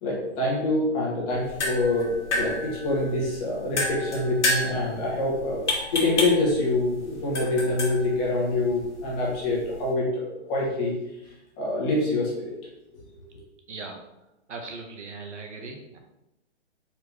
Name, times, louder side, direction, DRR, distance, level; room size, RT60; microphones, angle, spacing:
voice 1, 0.0-5.7 5.9-11.0 11.6-12.5, left 2 dB, 25° left, -4 dB, 1.4 m, -26 dB
sound 1, 1.3-9.9, left 1 dB, 80° left, 1.6 m, -31 dB
voice 2, 13.7-14.0 14.5-16.0, right 3 dB, 90° right, 3 dB, 1.1 m, -38 dB
4.5 x 3.0 x 3.4 m, 0.90 s
hypercardioid pair, 145°, 34 cm